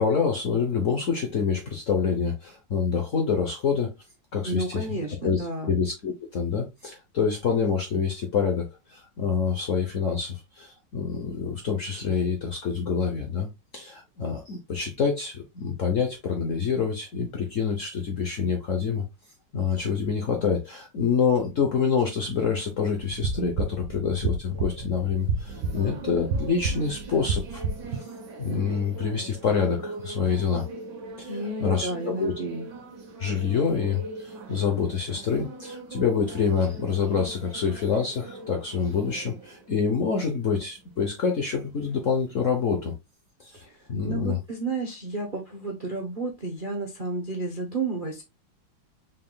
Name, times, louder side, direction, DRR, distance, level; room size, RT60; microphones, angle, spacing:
voice 1, 0.0-3.9 4.3-5.0 5.2-13.5 13.7-19.0 19.5-27.6 27.9-28.0 28.4-30.6 31.2-32.3 33.2-42.9 43.4-43.6 43.9-44.4, left 6 dB, 60° left, 0.9 m, -26 dB
voice 2, 4.4-5.7 31.3-32.7 43.5-43.8 44.0-48.2, right 2 dB, 45° right, 0.7 m, -31 dB
sound 1, 23.0-28.0, right 4 dB, 85° right, 1.7 m, -30 dB
sound 2, 24.5-43.0, right 3 dB, 60° right, 1.7 m, -42 dB
5.5 x 3.5 x 2.2 m
omnidirectional pair, 2.2 m